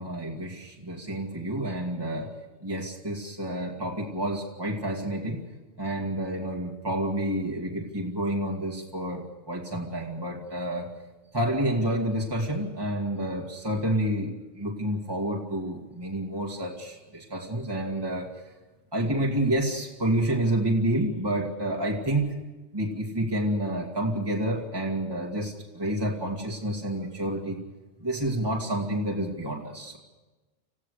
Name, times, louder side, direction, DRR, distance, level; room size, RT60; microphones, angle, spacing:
voice 1, 0.0-2.3 2.6-5.4 5.8-10.9 11.3-18.3 18.9-22.3 22.7-27.6 28.0-30.0, right 1 dB, 20° right, -1 dB, 2.2 m, -29 dB
26.5 x 16.0 x 6.6 m, 1.1 s
omnidirectional pair, 1.1 m